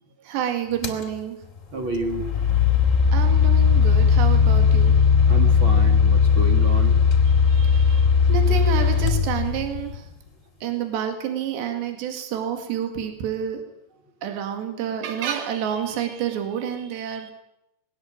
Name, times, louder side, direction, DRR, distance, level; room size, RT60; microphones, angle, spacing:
voice 1, 0.2-1.4 3.1-4.9 7.3-10.0 10.6-13.6 14.2-17.3, right 8 dB, 75° right, 5 dB, 4.3 m, -29 dB
sound 1, 0.8-1.0 1.9-9.9, left 6 dB, 25° left, 1.8 m, -18 dB
voice 2, 1.7-2.3 5.3-7.1 14.2-14.3, right 3 dB, 50° right, 5 dB, 1.6 m, -30 dB
20.5 x 18.0 x 8.7 m, 0.84 s
omnidirectional pair, 5.2 m